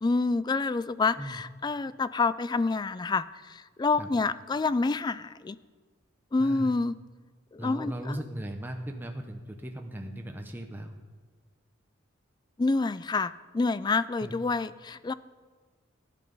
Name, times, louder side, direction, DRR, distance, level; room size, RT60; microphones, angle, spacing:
voice 1, 0.0-3.2 3.8-5.6 6.3-6.9 7.5-8.2 12.6-15.1, left 3 dB, 20° left, 16 dB, 0.3 m, -27 dB
voice 2, 6.4-6.7 7.6-10.9 14.2-14.3, right 1 dB, 10° right, 3 dB, 0.9 m, -38 dB
14.5 x 10.0 x 5.4 m, 1.4 s
head